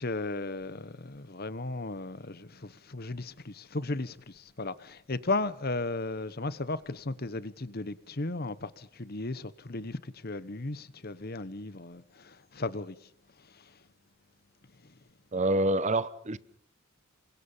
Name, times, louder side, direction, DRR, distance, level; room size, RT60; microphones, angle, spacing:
voice 1, 0.0-12.9 13.5-13.7 14.8-14.9, left 2 dB, 45° left, 1.1 m, -35 dB
voice 2, 15.3-16.4, right 1 dB, 30° right, 0.9 m, -27 dB
28.5 x 24.0 x 5.6 m
head